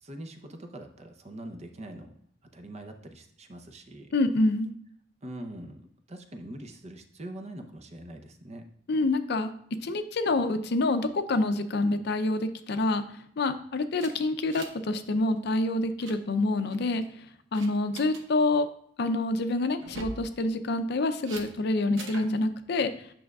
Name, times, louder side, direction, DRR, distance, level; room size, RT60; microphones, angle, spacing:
voice 1, 0.0-2.1 2.5-4.1 5.2-8.6, right 1 dB, 35° right, 5 dB, 0.7 m, -43 dB
voice 2, 4.1-4.7 8.9-9.5 9.8-13.0 13.4-17.0 17.5-18.7 19.0-22.9, left 2 dB, 60° left, 10 dB, 0.5 m, -27 dB
sound 1, 14.0-14.9 15.1-15.4 15.7-16.2 16.7-17.1 17.5-18.2 19.8-20.2 21.2-21.5 22.0-22.3, right 2 dB, 80° right, 0.9 m, -42 dB
8.7 x 6.2 x 2.3 m, 0.67 s
head